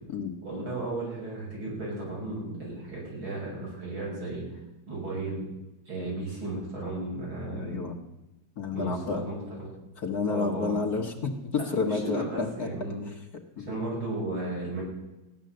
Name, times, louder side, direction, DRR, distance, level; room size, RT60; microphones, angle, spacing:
voice 1, 0.4-4.6 4.9-5.4 5.9-7.8 8.7-9.7 10.3-10.8 11.5-13.0 13.6-14.8, right 2 dB, 85° right, -4 dB, 8.1 m, -34 dB
voice 2, 7.5-7.9 8.6-9.2 10.0-12.7 13.1-13.2 13.6-13.8, left 4 dB, 50° left, 2 dB, 1.8 m, -30 dB
15.5 x 11.0 x 7.7 m, 0.98 s
omnidirectional pair, 2.2 m